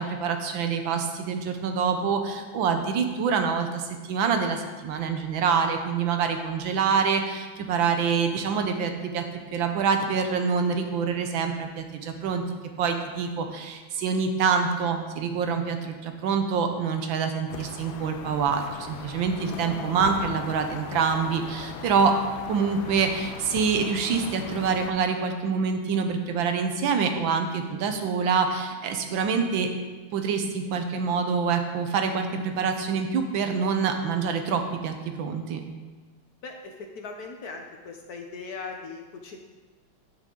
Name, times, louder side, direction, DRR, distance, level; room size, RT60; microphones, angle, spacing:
voice 1, 0.0-9.2 9.5-12.4 12.8-22.2 22.5-29.7 30.1-35.6, right 5 dB, 75° right, 6 dB, 1.5 m, -26 dB
sound 1, 17.5-24.9, left 6 dB, 80° left, 1.4 m, -39 dB
voice 2, 36.4-39.4, left 4 dB, 60° left, 3 dB, 1.1 m, -39 dB
9.0 x 8.0 x 3.8 m, 1.4 s
omnidirectional pair, 2.2 m